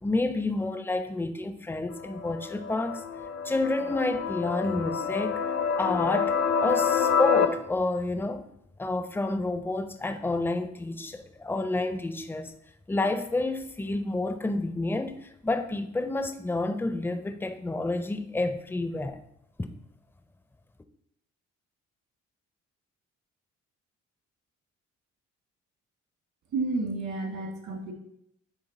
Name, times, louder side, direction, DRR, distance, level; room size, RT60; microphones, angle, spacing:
voice 1, 0.0-3.0 3.4-8.5 8.8-12.5 12.9-19.2, left 2 dB, 5° left, 9 dB, 0.5 m, -29 dB
sound 1, 1.9-7.5, left 6 dB, 60° left, 0.8 m, -27 dB
voice 2, 26.5-27.9, right 3 dB, 70° right, 1 dB, 1.8 m, -31 dB
8.1 x 3.1 x 4.2 m, 0.74 s
cardioid pair, 90°, 30 cm